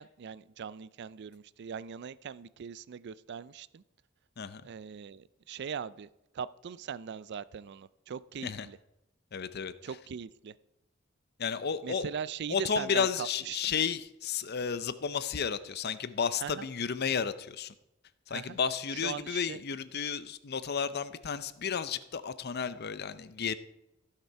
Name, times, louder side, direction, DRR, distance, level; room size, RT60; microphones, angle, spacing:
voice 1, 0.0-3.8 4.6-6.1 6.3-8.8 9.8-10.5 11.8-13.7 16.4-16.7 18.3-18.6 18.9-19.6, right 7 dB, 55° right, 18 dB, 0.4 m, -40 dB
voice 2, 9.3-9.7 11.4-12.0 12.5-17.7 18.3-23.5, left 6 dB, 55° left, 14 dB, 0.6 m, -32 dB
15.0 x 6.7 x 4.6 m, 0.90 s
head